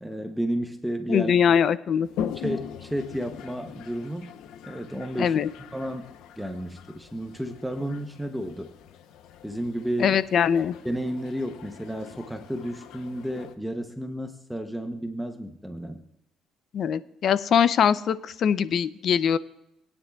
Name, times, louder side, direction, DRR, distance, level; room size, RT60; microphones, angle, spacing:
voice 1, 0.0-1.3 2.3-4.3 4.6-5.4 5.7-8.7 9.4-10.2 10.8-16.0, equal, ahead, 5 dB, 0.7 m, -32 dB
voice 2, 1.1-2.1 5.2-5.5 10.0-10.8 16.7-19.4, left 8 dB, 50° left, 15 dB, 0.5 m, -22 dB
Toilet flush, 2.0-13.5, left 8 dB, 85° left, 0.7 m, -41 dB
20.5 x 9.8 x 2.3 m, 0.87 s
cardioid pair, 130°, 0 cm